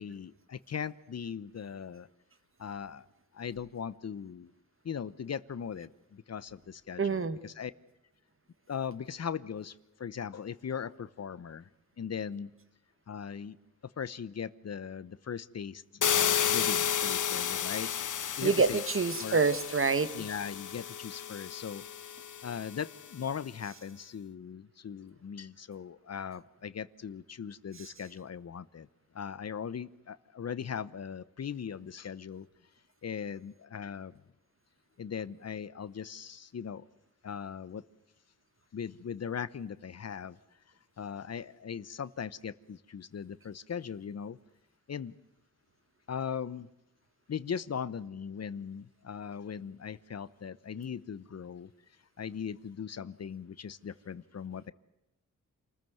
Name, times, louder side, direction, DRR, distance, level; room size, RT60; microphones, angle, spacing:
voice 1, 0.0-2.1 2.6-3.0 3.3-4.5 4.8-7.7 8.7-11.7 12.0-12.5 13.1-13.6 14.0-18.0 18.4-18.8 19.2-19.4 20.1-22.1 22.4-28.9 29.1-32.5 33.0-34.2 35.0-36.8 37.2-37.8 38.7-40.4 41.0-44.4 44.9-45.1 46.1-46.7 47.3-51.7 52.2-54.7, left 7 dB, 50° left, 0.9 m, -39 dB
voice 2, 7.0-7.4 18.4-20.2 27.8-27.9, right 4 dB, 40° right, 1.6 m, -27 dB
sound 1, 16.0-22.8, left 8 dB, 70° left, 1.2 m, -32 dB
27.5 x 14.5 x 9.3 m
wide cardioid pair, 95°, 32 cm